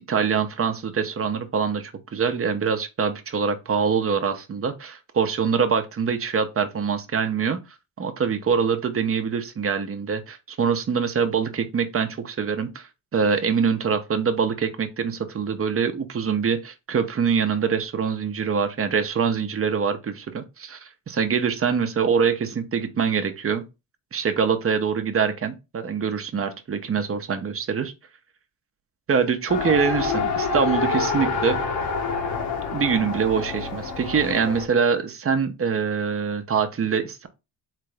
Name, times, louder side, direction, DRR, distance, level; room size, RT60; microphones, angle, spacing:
voice 1, 0.1-7.6 8.0-23.6 24.1-27.9 29.1-31.6 32.7-37.3, right 6 dB, 35° right, 0.9 m, -24 dB
Race car auto racing, 29.5-34.7, left 4 dB, 60° left, 1.1 m, -27 dB
3.7 x 3.3 x 3.4 m
supercardioid pair, 70°, 42 cm